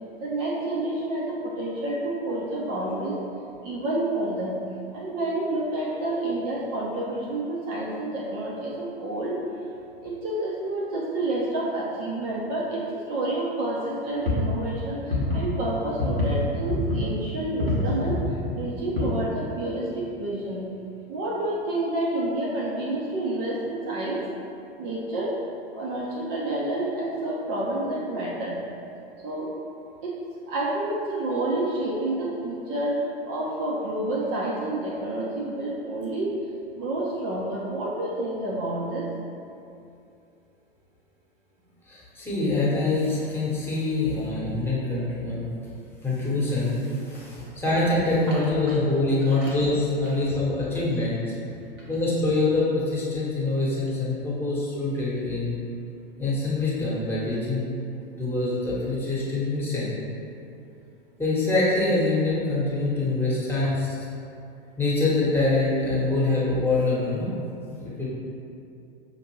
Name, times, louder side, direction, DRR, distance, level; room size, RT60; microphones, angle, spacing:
voice 1, 0.2-3.2 3.6-4.6 4.9-9.4 10.0-20.7 21.1-24.2 24.8-25.3 25.7-28.6 29.2-29.5 30.0-30.1 30.4-33.0 33.3-36.3 36.7-39.1 49.3-49.5 51.8-51.9, right 1 dB, 40° right, -5 dB, 0.6 m, -29 dB
sound 1, 14.2-15.7 16.0-16.3 16.6-17.2 17.6-18.5 19.0-19.1 20.0-20.1, left 2 dB, 85° right, 1.0 m, -26 dB
voice 2, 41.9-45.5 46.0-51.2 51.9-55.6 56.2-57.7 58.2-59.9 61.2-63.9 64.8-67.3 67.7-68.1, left 2 dB, 5° left, -8 dB, 1.1 m, -25 dB
5.8 x 2.6 x 3.0 m, 2.6 s
figure-of-eight pair, 90°, 29 cm